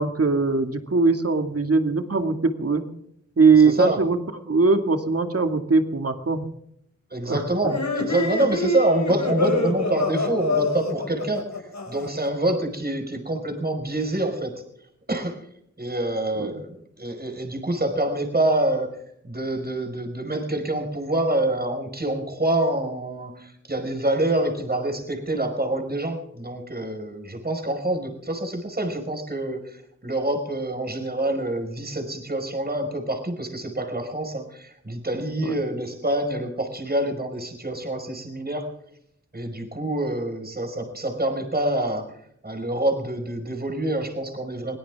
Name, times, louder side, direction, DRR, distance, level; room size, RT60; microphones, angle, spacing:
voice 1, 0.0-2.8 3.4-4.2 4.5-6.5 7.3-7.8 16.4-16.6 35.4-35.6, right 4 dB, 55° right, 7 dB, 2.2 m, -21 dB
voice 2, 3.6-4.0 7.1-11.4 11.9-14.6 15.1-15.4 15.8-16.7 17.0-18.9 19.2-38.7 39.3-42.1 42.4-44.8, right 1 dB, 35° right, 4 dB, 5.2 m, -26 dB
sound 1, 7.7-12.3, left 3 dB, 70° left, 5.7 m, -26 dB
23.0 x 17.5 x 3.6 m, 0.75 s
cardioid pair, 45°, 29 cm